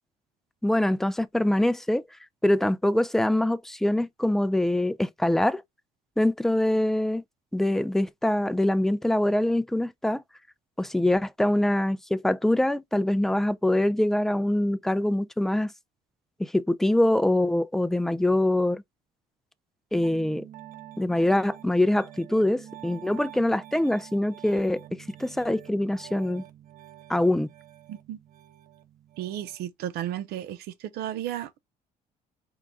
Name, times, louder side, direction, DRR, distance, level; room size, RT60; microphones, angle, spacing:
voice 1, 0.6-2.0 2.4-5.6 6.2-7.2 7.5-10.2 10.8-15.7 16.4-18.8 19.9-20.5 21.0-26.4 27.1-27.5, left 1 dB, ahead, 0.4 m, -24 dB
Piano, 19.9-29.6, right 12 dB, 55° right, 0.9 m, -47 dB
voice 2, 29.2-30.6 30.9-31.6, right 12 dB, 80° right, 0.7 m, -33 dB
4.8 x 2.2 x 3.7 m
cardioid pair, 105°, 16 cm